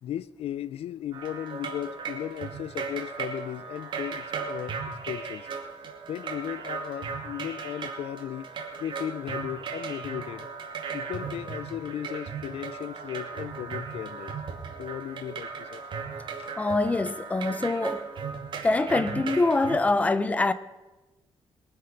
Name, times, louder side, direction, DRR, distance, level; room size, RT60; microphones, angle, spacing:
voice 1, 0.0-5.5 6.1-8.5 8.8-10.5 10.9-14.3 14.8-15.8 16.3-16.5, left 11 dB, 80° left, 0.5 m, -36 dB
sound 1, 1.1-19.8, right 5 dB, 55° right, 2.2 m, -37 dB
voice 2, 16.6-18.1 18.6-20.5, left 2 dB, 15° left, 0.6 m, -24 dB
22.5 x 7.7 x 5.8 m
wide cardioid pair, 170°, 10 cm